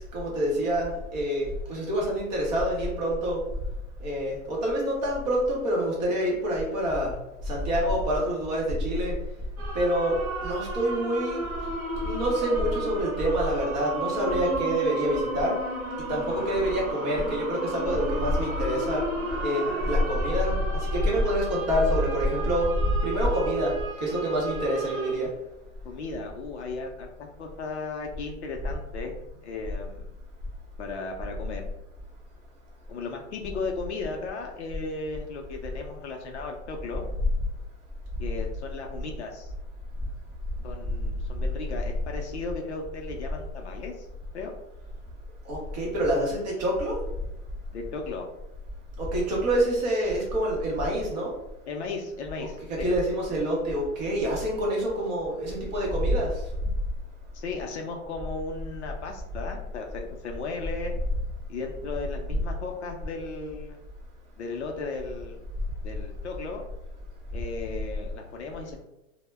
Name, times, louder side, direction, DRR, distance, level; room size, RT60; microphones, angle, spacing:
voice 1, 0.0-3.4 4.0-7.1 7.4-9.1 9.7-11.4 12.0-15.6 16.1-19.0 19.4-20.6 20.9-23.7 24.0-25.3 45.5-47.0 49.0-51.3 52.4-56.3, equal, 30° right, -4 dB, 0.7 m, -26 dB
sound 1, 9.6-25.1, right 2 dB, 80° right, 0.9 m, -33 dB
voice 2, 19.1-19.9 25.8-29.1 29.4-30.1 30.8-31.6 32.9-37.1 38.2-39.5 40.6-44.1 44.3-44.5 47.7-48.3 51.7-52.9 57.3-60.9 61.5-63.8 64.4-65.4 65.8-66.6 67.3-68.8, left 3 dB, 55° left, 2 dB, 0.5 m, -36 dB
2.1 x 2.1 x 3.2 m, 0.93 s
hypercardioid pair, 160°, 42 cm